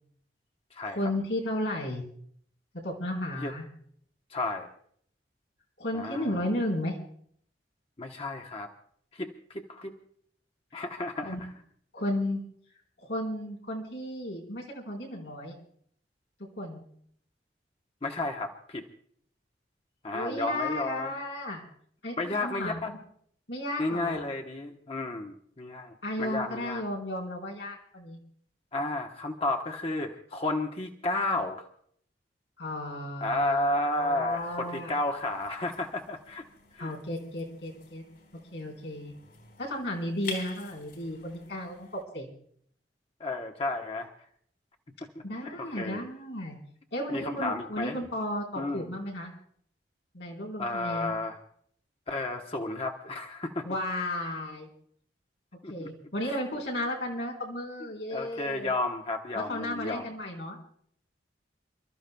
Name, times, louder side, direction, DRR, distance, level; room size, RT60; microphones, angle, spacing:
voice 1, 0.8-2.1 2.8-3.6 5.8-6.9 10.7-10.8 11.2-11.5 11.9-12.4 13.0-15.6 16.4-16.8 20.1-21.6 22.0-23.0 23.5-24.3 26.0-28.2 32.6-35.0 36.8-38.0 38.5-39.1 39.6-42.3 45.2-46.6 46.9-49.3 50.1-51.1 53.6-54.7 55.7-58.7 59.3-60.6, left 1 dB, 90° left, -1 dB, 4.3 m, -34 dB
voice 2, 4.3-4.7 5.9-6.2 8.0-8.7 9.1-9.9 10.7-11.4 18.0-18.9 20.0-21.1 22.2-22.9 23.8-26.8 28.7-31.7 33.2-36.4 36.7-36.9 43.2-44.1 45.4-46.0 47.1-48.0 48.6-48.9 50.6-51.4 52.1-53.7 55.6-55.9 58.1-60.0, left 2 dB, 35° left, 3 dB, 1.1 m, -32 dB
sound 1, 34.3-42.0, left 4 dB, 60° left, 4.2 m, -48 dB
29.5 x 13.5 x 2.3 m, 0.64 s
head